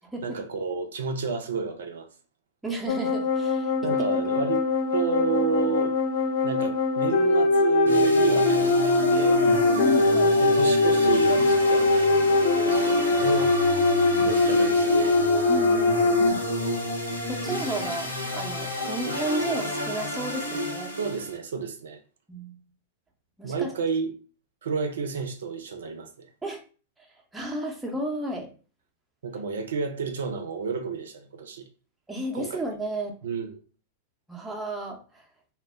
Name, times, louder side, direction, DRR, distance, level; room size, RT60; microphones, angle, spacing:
voice 1, 0.2-2.1 3.8-4.6 4.9-6.0 6.4-9.5 10.4-13.5 14.2-15.2 21.0-22.0 23.4-24.1 24.6-26.3 29.2-31.6 32.3-32.6 33.2-33.6, right 5 dB, 75° right, 0.4 m, -30 dB
voice 2, 2.6-3.7 9.7-10.4 15.5-16.4 17.3-20.9 22.3-22.6 23.4-23.7 26.4-26.6 27.3-28.5 32.1-33.1 34.3-35.2, right 1 dB, 5° right, 0.6 m, -32 dB
sound 1, 2.9-16.3, left 3 dB, 60° left, 0.5 m, -22 dB
sound 2, 7.8-21.4, equal, 90° left, 0.8 m, -30 dB
2.1 x 2.0 x 3.4 m
hypercardioid pair, 100°, 0 cm